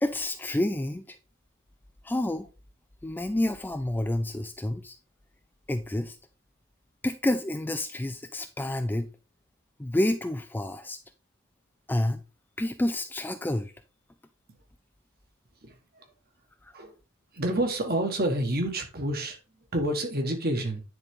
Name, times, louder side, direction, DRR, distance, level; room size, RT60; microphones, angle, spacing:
voice 1, 0.0-1.2 2.0-2.5 3.0-5.0 5.7-6.2 7.0-9.1 9.8-11.0 11.9-12.2 12.6-13.7, left 1 dB, 10° left, 0.3 m, -29 dB
voice 2, 15.6-16.0 16.7-16.9 17.3-19.4 19.7-20.8, right 1 dB, 45° right, 1.4 m, -28 dB
9.7 x 4.0 x 3.6 m
head